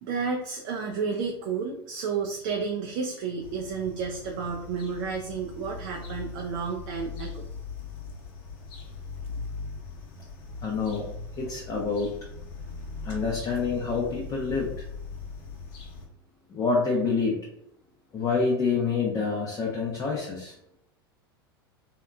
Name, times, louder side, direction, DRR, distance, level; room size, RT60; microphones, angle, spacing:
voice 1, 0.0-7.5, right 5 dB, 55° right, 1 dB, 0.4 m, -31 dB
sound 1, 3.4-16.1, left 4 dB, 65° left, 0.7 m, -40 dB
voice 2, 10.6-11.1 11.4-12.1 13.0-14.8 16.5-17.4 18.1-20.5, left 4 dB, 25° left, -3 dB, 0.6 m, -27 dB
2.8 x 2.2 x 2.3 m, 0.78 s
hypercardioid pair, 90°, 13 cm